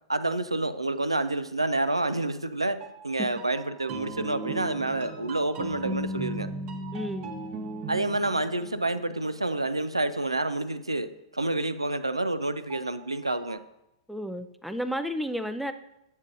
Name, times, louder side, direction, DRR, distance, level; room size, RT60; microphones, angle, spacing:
voice 1, 0.1-6.5 7.9-13.6, right 2 dB, 90° right, 12 dB, 0.4 m, -28 dB
sound 1, 2.8-10.5 12.7-13.6, right 2 dB, 40° right, 1.0 m, -38 dB
voice 2, 6.9-7.4 14.1-15.7, equal, ahead, 8 dB, 0.4 m, -32 dB
9.3 x 7.2 x 2.6 m, 0.83 s
figure-of-eight pair, 105°, 3 cm